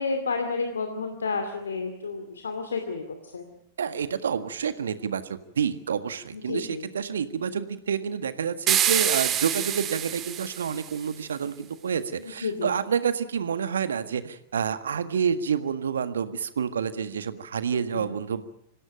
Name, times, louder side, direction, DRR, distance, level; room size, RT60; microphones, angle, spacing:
voice 1, 0.0-3.5 6.3-6.9 12.2-12.7 17.7-18.0, left 4 dB, 75° left, 6 dB, 2.5 m, -31 dB
voice 2, 3.8-18.4, right 7 dB, 70° right, 11 dB, 1.6 m, -28 dB
sound 1, 8.7-11.1, right 10 dB, 30° right, 2.0 m, -26 dB
25.5 x 16.5 x 9.0 m, 0.85 s
figure-of-eight pair, 95°, 0 cm